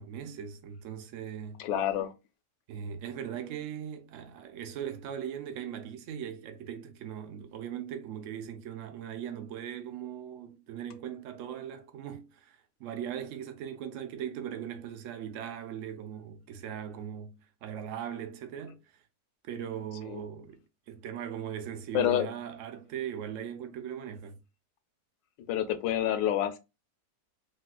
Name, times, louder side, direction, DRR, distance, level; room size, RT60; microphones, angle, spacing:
voice 1, 0.0-1.7 2.7-18.8 19.4-24.4, right 9 dB, 70° right, 0.7 m, -39 dB
voice 2, 1.6-2.1 20.1-20.2 21.9-22.3 25.5-26.6, left 10 dB, 85° left, 1.3 m, -28 dB
4.1 x 2.4 x 2.2 m
omnidirectional pair, 1.9 m